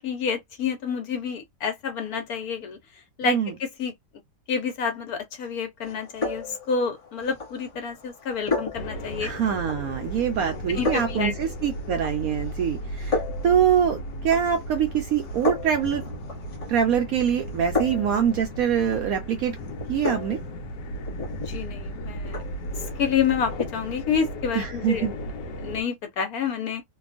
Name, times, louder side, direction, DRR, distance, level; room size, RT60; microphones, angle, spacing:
voice 1, 0.0-2.8 3.2-3.9 4.5-9.3 10.7-11.3 21.5-22.4 23.0-25.1 25.6-26.8, left 6 dB, 60° left, 1.2 m, -28 dB
sound 1, 5.8-24.0, left 3 dB, 40° left, 0.5 m, -35 dB
sound 2, 8.7-25.8, equal, 80° left, 1.3 m, -35 dB
voice 2, 9.2-16.1 16.7-19.5 19.9-20.4 24.5-25.1, right 8 dB, 70° right, 0.8 m, -24 dB
2.9 x 2.3 x 2.4 m
omnidirectional pair, 1.9 m